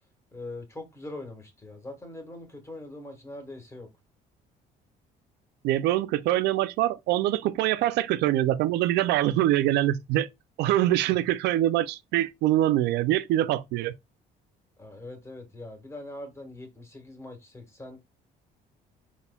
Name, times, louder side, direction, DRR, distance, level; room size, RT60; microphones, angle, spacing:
voice 1, 0.3-3.9 11.0-11.1 14.8-18.0, left 2 dB, 15° left, 1.6 m, -42 dB
voice 2, 5.6-10.3 10.6-13.9, right 14 dB, 80° right, 0.4 m, -24 dB
4.1 x 4.1 x 2.3 m
cardioid pair, 110°, 17 cm